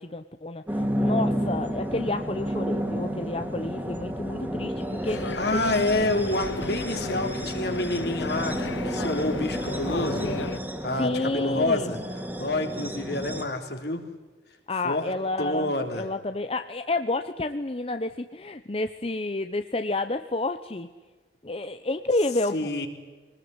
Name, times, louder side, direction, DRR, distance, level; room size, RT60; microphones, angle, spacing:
voice 1, 0.0-5.9 11.0-11.9 14.7-20.9 21.4-22.7, left 2 dB, 30° left, 9 dB, 0.8 m, -30 dB
sound 1, 0.7-13.4, equal, 10° right, 2.7 m, -31 dB
sound 2, 5.0-10.6, left 3 dB, 85° left, 0.9 m, -35 dB
voice 2, 5.4-8.6 8.8-10.3 10.8-12.0 12.4-14.0 14.8-15.0 15.4-16.0 22.5-22.9, left 2 dB, 60° left, 5 dB, 3.7 m, -28 dB
25.0 x 20.0 x 9.8 m, 1.3 s
head